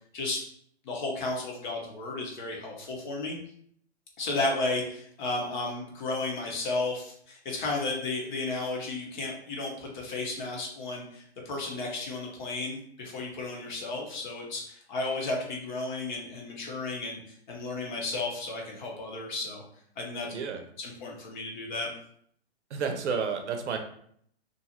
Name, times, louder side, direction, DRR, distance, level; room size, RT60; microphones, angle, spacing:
voice 1, 0.8-3.4 4.2-17.2 17.5-19.6 20.0-20.3 20.8-21.9, left 2 dB, 45° left, -1 dB, 0.8 m, -33 dB
voice 2, 22.7-23.8, right 5 dB, 80° right, 5 dB, 0.6 m, -30 dB
2.6 x 2.4 x 2.8 m, 0.65 s
hypercardioid pair, 150°, 34 cm